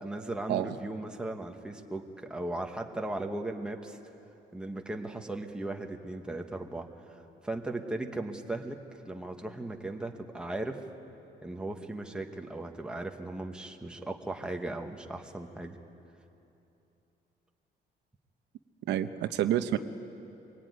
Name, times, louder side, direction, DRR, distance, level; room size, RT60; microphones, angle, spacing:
voice 1, 0.0-4.0 4.5-8.8 9.0-10.8 11.4-15.8, right 2 dB, 5° right, 3 dB, 1.2 m, -37 dB
voice 2, 18.9-19.8, right 11 dB, 85° right, 8 dB, 1.0 m, -28 dB
24.5 x 22.5 x 9.5 m, 2.9 s
cardioid pair, 180°, 18 cm